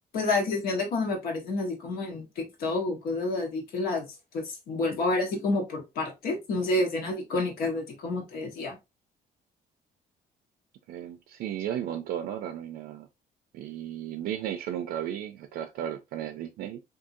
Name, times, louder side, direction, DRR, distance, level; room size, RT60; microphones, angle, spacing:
voice 1, 0.1-4.1 4.3-8.8, left 2 dB, 70° left, 1.3 m, -29 dB
voice 2, 10.9-13.1 13.5-16.8, right 10 dB, 70° right, 0.4 m, -34 dB
3.7 x 2.7 x 2.6 m
cardioid pair, 165°, 16 cm